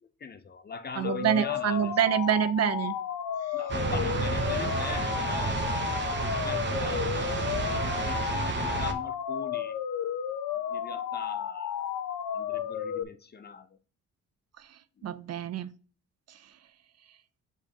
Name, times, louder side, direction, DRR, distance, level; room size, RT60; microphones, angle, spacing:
voice 1, 0.0-1.9 3.5-9.8 10.5-12.0 12.3-13.8 15.0-15.2, left 5 dB, 35° left, 0.7 m, -41 dB
sound 1, 1.0-13.0, left 9 dB, 75° left, 0.9 m, -33 dB
voice 2, 1.0-3.0 14.6-15.7 16.3-16.5, right 9 dB, 55° right, 0.6 m, -27 dB
sound 2, 3.7-8.9, right 4 dB, 40° right, 1.0 m, -30 dB
6.7 x 5.0 x 2.9 m
cardioid pair, 90°, 30 cm